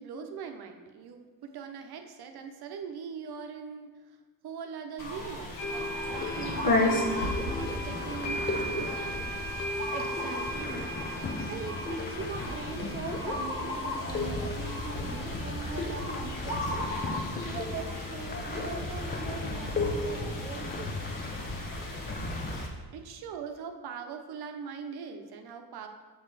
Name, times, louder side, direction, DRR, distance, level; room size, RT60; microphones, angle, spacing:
voice 1, 0.0-3.9 4.4-9.0 14.4-14.8 19.9-20.1 22.3-22.4 22.9-25.9, right 6 dB, 65° right, 6 dB, 0.8 m, -41 dB
sound 1, 5.0-22.7, left 1 dB, 50° left, 1.2 m, -34 dB
sound 2, 5.6-17.2, equal, 90° left, 0.8 m, -39 dB
sound 3, 6.0-22.7, left 3 dB, 25° left, 0.6 m, -37 dB
voice 2, 9.9-10.9 11.5-17.0 17.4-21.0, right 5 dB, 25° right, 4 dB, 0.6 m, -41 dB
7.2 x 3.9 x 4.7 m, 1.3 s
cardioid pair, 85°, 41 cm